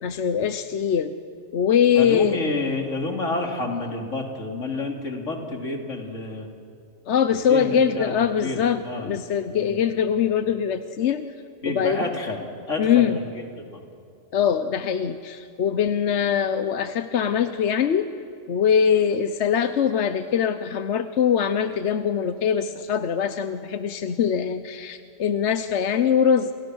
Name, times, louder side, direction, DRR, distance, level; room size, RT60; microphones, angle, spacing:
voice 1, 0.0-1.1 1.5-2.4 7.1-11.2 11.7-12.1 12.8-13.2 14.3-18.1 18.5-26.5, left 8 dB, 65° left, 10 dB, 1.1 m, -22 dB
voice 2, 1.9-6.5 7.3-8.1 8.4-9.2 9.5-9.8 11.6-13.8, left 2 dB, 85° left, 1 dB, 3.3 m, -29 dB
29.5 x 28.0 x 6.4 m, 2.4 s
omnidirectional pair, 1.3 m